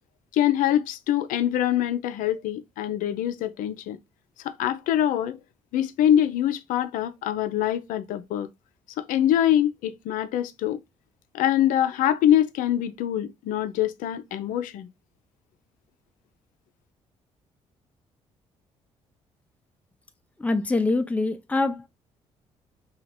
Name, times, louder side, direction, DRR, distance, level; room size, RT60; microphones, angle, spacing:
voice 1, 0.3-4.0 4.4-5.4 5.7-8.5 9.0-10.8 11.3-14.9, left 11 dB, 65° left, 0.4 m, -24 dB
voice 2, 20.4-21.9, left 3 dB, 10° left, 0.5 m, -24 dB
2.9 x 2.4 x 4.2 m
hypercardioid pair, 50°, 15 cm